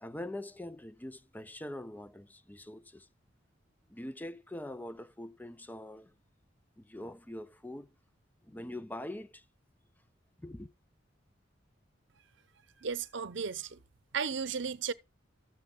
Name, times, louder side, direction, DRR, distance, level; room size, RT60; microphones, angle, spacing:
voice 1, 0.0-3.1 3.9-6.1 6.8-7.9 8.5-9.4 10.4-10.7, left 1 dB, 10° left, 0.5 m, -43 dB
voice 2, 12.8-13.8 14.1-14.9, right 6 dB, 65° right, 0.8 m, -34 dB
13.0 x 7.5 x 3.7 m
head